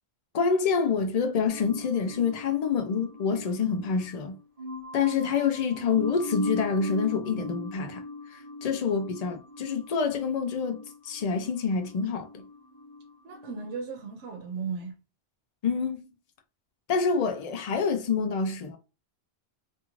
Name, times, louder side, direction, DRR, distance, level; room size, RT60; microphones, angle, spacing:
voice 1, 0.3-4.4 4.9-8.0 8.3-12.3 15.6-16.0 16.9-18.8, left 5 dB, 60° left, 0.4 m, -27 dB
sound 1, 1.5-13.7, left 2 dB, 45° right, 0.6 m, -40 dB
voice 2, 13.2-14.9, right 5 dB, 85° right, 0.9 m, -36 dB
2.5 x 2.4 x 2.9 m
omnidirectional pair, 1.1 m